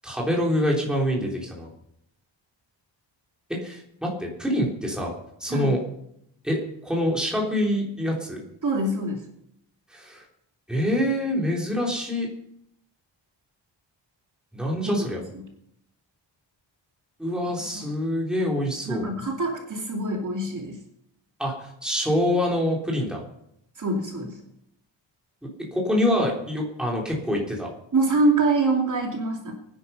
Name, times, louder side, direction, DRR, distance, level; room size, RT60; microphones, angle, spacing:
voice 1, 0.0-1.7 3.5-5.1 5.4-5.8 6.4-8.4 9.9-10.2 10.7-12.3 14.5-15.2 17.2-19.1 21.4-23.2 25.7-27.7, equal, ahead, -2 dB, 3.5 m, -25 dB
voice 2, 8.6-9.2 14.8-15.0 17.7-17.8 18.9-20.8 23.8-24.4 27.9-29.5, right 2 dB, 40° right, 0 dB, 2.8 m, -25 dB
22.5 x 10.0 x 5.6 m, 0.76 s
wide cardioid pair, 175°, 46 cm